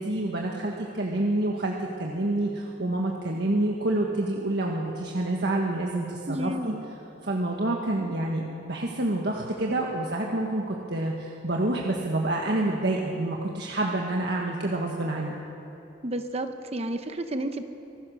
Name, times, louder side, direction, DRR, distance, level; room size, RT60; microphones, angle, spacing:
voice 1, 0.0-6.7 7.2-15.4, right 1 dB, 60° right, -1 dB, 1.5 m, -28 dB
voice 2, 6.3-6.9 16.0-17.6, right 1 dB, 35° right, 7 dB, 0.9 m, -31 dB
24.0 x 17.5 x 6.4 m, 2.9 s
head